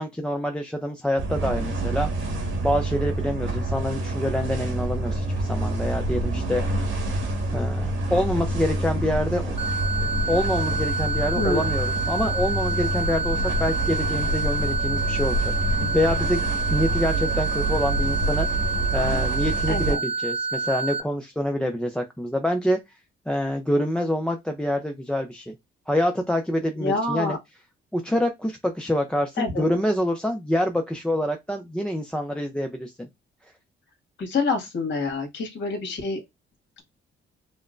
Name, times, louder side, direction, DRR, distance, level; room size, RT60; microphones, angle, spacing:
voice 1, 0.0-2.4 2.6-7.1 7.5-9.5 10.3-16.5 16.7-18.5 18.9-22.8 23.3-25.5 25.9-27.4 27.9-33.1, left 1 dB, 5° left, 0.5 m, -26 dB
sound 1, 1.2-19.9, right 1 dB, 90° right, 1.7 m, -27 dB
sound 2, 9.6-21.0, right 4 dB, 30° right, 0.8 m, -28 dB
voice 2, 19.7-20.0 26.8-27.4 29.4-29.6 34.2-36.2, left 3 dB, 65° left, 1.7 m, -26 dB
5.1 x 2.1 x 2.5 m
cardioid pair, 90°, 20 cm